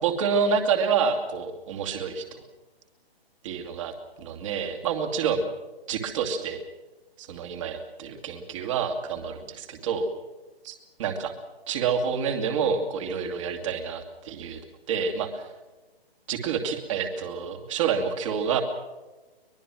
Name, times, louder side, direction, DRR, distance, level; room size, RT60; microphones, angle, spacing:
voice 1, 0.0-2.4 3.4-5.5 5.9-6.6 7.2-10.1 10.7-10.8 11.0-11.3 11.7-14.6 14.9-15.5 16.3-18.6, right 6 dB, 30° right, 5 dB, 2.6 m, -28 dB
23.5 x 21.5 x 6.2 m, 1.2 s
figure-of-eight pair, 140°, 31 cm